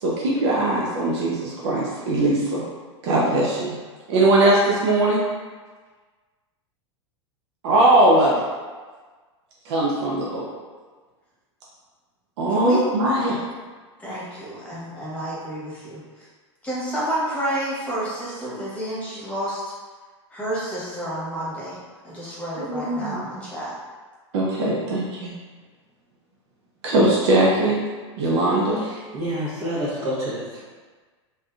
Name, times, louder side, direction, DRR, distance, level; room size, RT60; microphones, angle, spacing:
voice 1, 0.0-2.6 3.0-3.8 4.1-5.2 7.6-8.4 9.7-10.5 12.4-13.4 22.6-23.2 24.3-25.3 26.8-27.8 28.2-28.8, right 1 dB, 65° right, -4 dB, 0.6 m, -20 dB
voice 2, 12.5-12.8 14.0-16.0 16.6-19.6 20.3-21.8 22.0-23.7, right 1 dB, 10° left, -7 dB, 1.2 m, -30 dB
voice 3, 28.8-30.6, equal, 50° right, -12 dB, 1.1 m, -29 dB
3.3 x 2.7 x 2.3 m, 1.4 s
hypercardioid pair, 105°, 15 cm